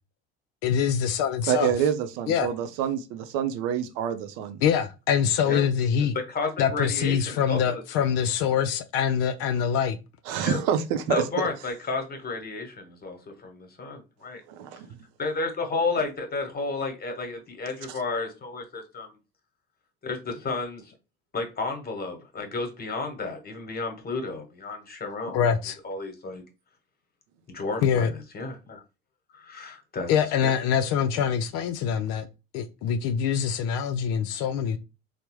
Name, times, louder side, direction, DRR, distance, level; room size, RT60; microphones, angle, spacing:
voice 1, 0.6-1.7 2.3-2.5 4.6-6.2 6.6-10.0 25.3-25.8 27.8-28.1 30.1-32.3 32.5-34.8, left 8 dB, 60° left, 0.4 m, -24 dB
voice 2, 1.5-4.6 10.3-11.3 14.5-14.9, right 8 dB, 70° right, 0.5 m, -27 dB
voice 3, 6.3-7.6 7.9-8.0 10.4-10.6 11.1-14.4 15.2-19.1 20.0-20.9 21.3-25.4 25.8-26.4 27.5-28.8 29.3-30.1 30.4-30.5, left 3 dB, 30° left, 1.1 m, -32 dB
3.3 x 2.1 x 3.0 m
hypercardioid pair, 65°, 30 cm